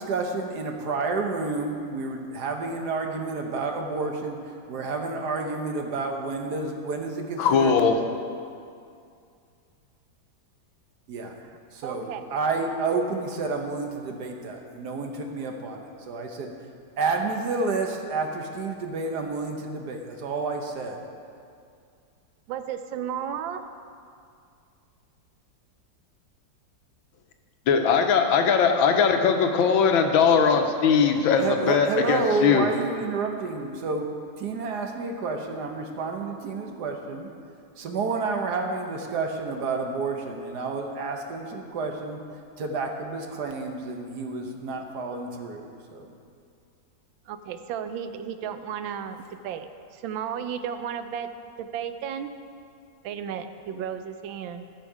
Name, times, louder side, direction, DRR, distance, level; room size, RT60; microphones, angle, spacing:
voice 1, 0.0-7.7 11.1-11.3 11.7-16.5 17.0-21.0 31.4-37.3 37.8-42.2 42.6-46.1, right 3 dB, 60° right, 3 dB, 1.4 m, -30 dB
voice 2, 7.4-8.0 27.7-32.7, left 6 dB, 85° left, 5 dB, 1.6 m, -20 dB
voice 3, 11.8-12.2 22.5-23.6 47.3-51.3 51.6-52.3 53.0-54.7, right 8 dB, 85° right, 10 dB, 1.4 m, -34 dB
14.5 x 6.3 x 4.8 m, 2.4 s
omnidirectional pair, 2.1 m